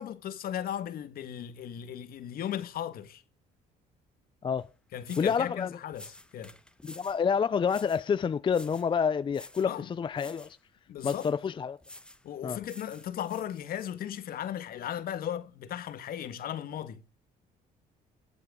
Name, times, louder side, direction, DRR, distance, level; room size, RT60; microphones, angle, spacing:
voice 1, 0.0-3.2 4.9-6.5 9.6-9.9 10.9-11.3 12.2-17.0, left 10 dB, 60° left, 1.7 m, -36 dB
sound 1, 4.6-4.7 5.0-5.5 5.9-7.2 7.7-8.1 8.5-8.9 9.3-9.7 10.1-10.5 11.0-11.4 11.8-12.2 12.6-13.9, left 1 dB, 5° left, 1.1 m, -50 dB
voice 2, 5.2-5.7 6.8-10.6 11.0-11.8 12.4-12.6, left 6 dB, 30° left, 0.5 m, -28 dB
20.0 x 8.0 x 3.8 m
cardioid pair, 110°, 17 cm